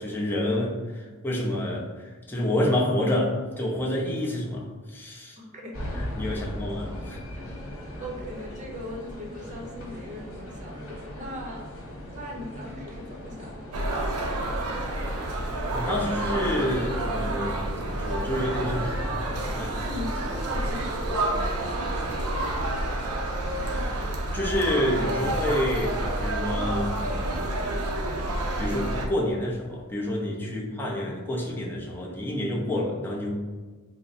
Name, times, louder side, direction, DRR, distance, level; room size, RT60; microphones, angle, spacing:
voice 1, 0.0-5.4 5.9-7.2 15.1-15.3 15.7-19.0 19.5-19.7 23.7-27.6 28.6-33.3, left 1 dB, 10° left, -3 dB, 0.6 m, -29 dB
voice 2, 5.4-5.8 7.4-7.5 8.0-11.7 12.1-13.8 18.7-18.9 19.7-22.1 30.5-30.8 32.6-32.8, left 1 dB, 35° right, -1 dB, 0.8 m, -40 dB
sound 1, 5.7-21.2, left 1 dB, 65° left, 1.1 m, -39 dB
sound 2, 13.7-29.1, right 1 dB, 90° right, 0.6 m, -29 dB
3.9 x 2.1 x 4.0 m, 1.4 s
head